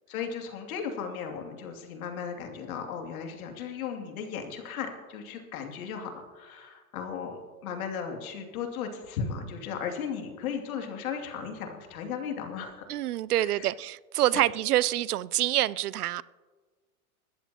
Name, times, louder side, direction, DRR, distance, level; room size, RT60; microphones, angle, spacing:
voice 1, 0.1-12.8 13.4-13.7 14.3-14.4, left 6 dB, 70° left, 3 dB, 2.6 m, -36 dB
voice 2, 12.9-16.2, right 14 dB, 85° right, 21 dB, 0.6 m, -26 dB
21.0 x 14.0 x 2.9 m, 1.4 s
hypercardioid pair, 110°, 44 cm